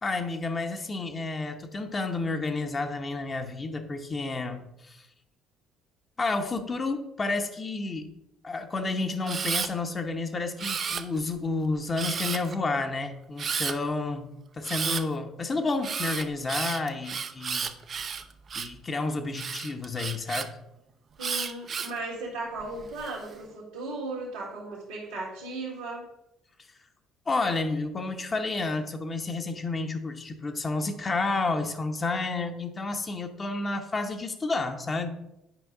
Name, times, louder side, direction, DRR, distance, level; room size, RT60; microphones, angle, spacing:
voice 1, 0.0-5.0 6.2-8.1 8.4-17.7 18.5-20.5 27.3-35.1, left 3 dB, 30° left, 5 dB, 0.9 m, -30 dB
Camera, 9.2-9.7 10.6-11.3 12.0-12.5 13.4-13.7 14.6-15.0 15.8-18.8 19.3-20.5 21.2-22.0 22.6-23.1, right 6 dB, 45° right, 0.5 m, -32 dB
voice 2, 21.2-26.1, right 2 dB, 75° right, -8 dB, 1.9 m, -36 dB
9.1 x 5.1 x 3.7 m, 0.87 s
hypercardioid pair, 50°, 0 cm